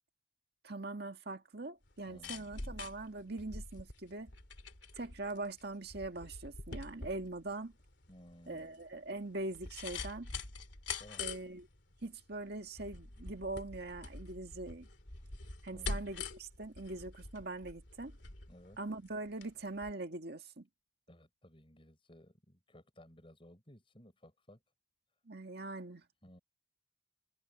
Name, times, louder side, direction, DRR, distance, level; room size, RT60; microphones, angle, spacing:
voice 1, 0.6-4.3 4.9-7.7 8.5-10.3 11.2-11.7 12.0-14.9 15.6-18.1 18.8-20.7 25.3-26.1, right 2 dB, 60° right, 1.9 m, -42 dB
sound 1, 1.9-19.5 19.8-19.9, left 4 dB, 65° left, 3.1 m, -45 dB
voice 2, 2.1-2.5 8.1-8.8 11.0-11.3 15.7-16.0 18.5-18.8 21.1-24.6 26.2-26.4, equal, 30° left, 7.0 m, -58 dB
head